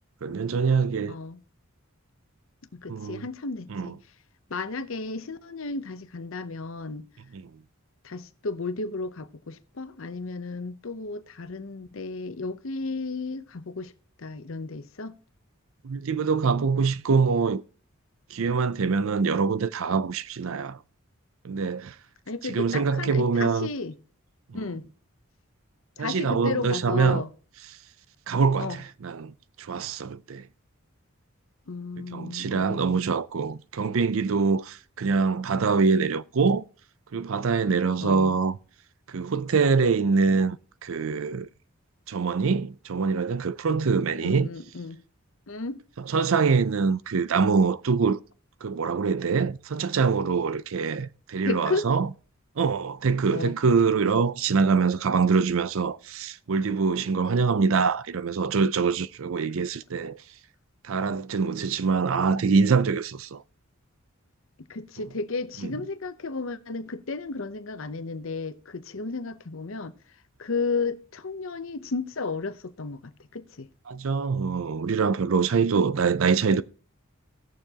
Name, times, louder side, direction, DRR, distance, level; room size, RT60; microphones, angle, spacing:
voice 1, 0.2-1.1 2.9-3.3 3.7-4.0 7.3-7.5 15.8-17.6 18.3-20.8 21.4-21.9 22.4-23.7 24.5-24.6 26.0-27.2 28.3-30.5 32.0-36.6 37.1-38.6 39.1-41.5 42.1-44.5 46.0-48.2 48.6-52.1 52.6-60.2 60.8-63.4 65.6-65.7 73.9-76.6, right 5 dB, 70° right, 0.5 m, -24 dB
voice 2, 1.1-1.4 2.7-4.0 4.5-7.0 8.0-13.9 14.2-15.2 22.3-23.9 24.5-24.8 26.0-27.3 28.6-28.8 31.7-33.0 38.0-38.3 44.2-45.0 45.5-45.8 51.4-51.9 53.3-53.5 64.7-69.9 70.4-73.7, left 3 dB, 65° left, 0.7 m, -33 dB
18.0 x 6.9 x 2.9 m
head